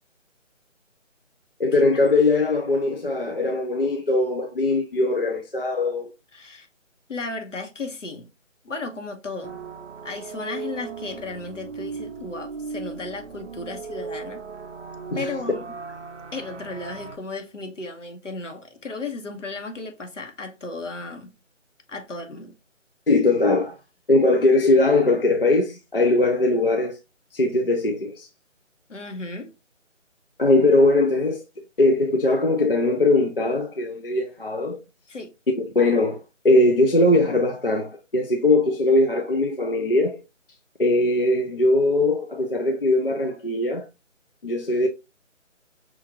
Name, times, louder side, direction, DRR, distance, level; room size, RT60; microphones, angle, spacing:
voice 1, 1.6-6.1 15.1-15.3 23.1-23.8 24.1-27.0 27.3-28.3 30.4-31.4 31.8-34.8 35.6-40.2 40.8-43.9 44.4-44.9, left 2 dB, 45° left, 0.5 m, -20 dB
voice 2, 6.3-6.7 7.1-8.3 8.6-9.6 10.0-14.4 15.1-15.6 16.3-21.3 21.9-22.5 28.9-29.5 35.1-35.3, left 3 dB, 70° left, 1.3 m, -34 dB
sound 1, 9.4-17.2, right 5 dB, 65° right, 0.6 m, -37 dB
5.6 x 2.4 x 2.9 m
figure-of-eight pair, 180°, 39 cm